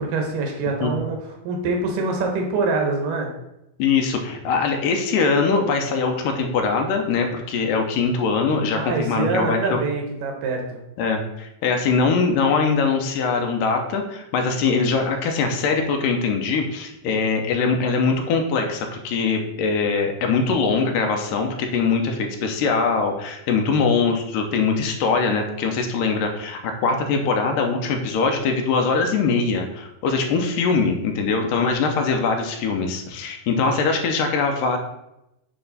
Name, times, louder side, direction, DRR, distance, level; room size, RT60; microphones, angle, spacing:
voice 1, 0.0-3.3 8.7-10.8, right 3 dB, 90° right, 2 dB, 2.7 m, -25 dB
voice 2, 3.8-9.8 11.0-34.8, left 4 dB, 85° left, 3 dB, 2.4 m, -22 dB
8.8 x 3.4 x 4.1 m, 0.87 s
omnidirectional pair, 3.8 m